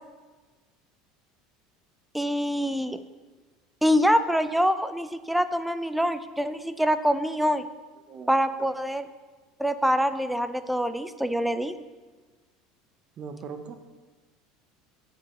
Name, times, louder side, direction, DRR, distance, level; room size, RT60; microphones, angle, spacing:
voice 1, 2.1-3.0 3.8-7.7 8.3-9.1 9.6-11.8, equal, ahead, 12 dB, 0.3 m, -25 dB
voice 2, 13.2-13.7, right 5 dB, 40° right, 8 dB, 0.6 m, -39 dB
9.3 x 4.5 x 3.0 m, 1.3 s
supercardioid pair, 105°, 2 cm